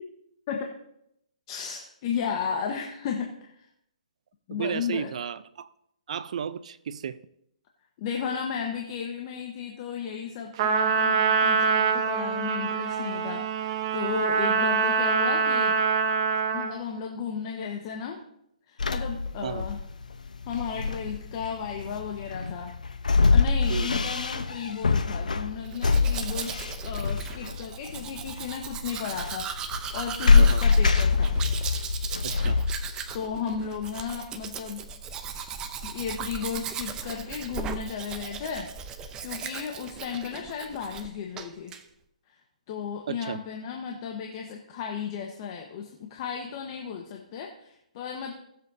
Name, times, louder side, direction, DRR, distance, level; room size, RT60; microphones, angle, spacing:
voice 1, 1.5-3.5 4.5-5.1 8.0-15.8 16.5-18.2 18.7-19.8 20.5-22.8 23.3-31.4 33.1-34.8 35.3-38.7 39.0-41.7 42.7-48.3, left 7 dB, 40° left, 1.2 m, -34 dB
voice 2, 4.5-5.7 6.1-7.2 19.4-19.6 23.7-23.9 30.3-30.6 32.2-32.6 43.1-43.4, right 7 dB, 60° right, 0.6 m, -33 dB
Trumpet, 10.6-16.8, right 5 dB, 40° right, 0.9 m, -24 dB
sound 1, 18.8-33.2, left 4 dB, 85° left, 0.8 m, -25 dB
Domestic sounds home sounds, 25.6-41.1 41.4-41.8, right 6 dB, 15° right, 0.7 m, -38 dB
18.5 x 7.6 x 2.7 m
hypercardioid pair, 145°, 4 cm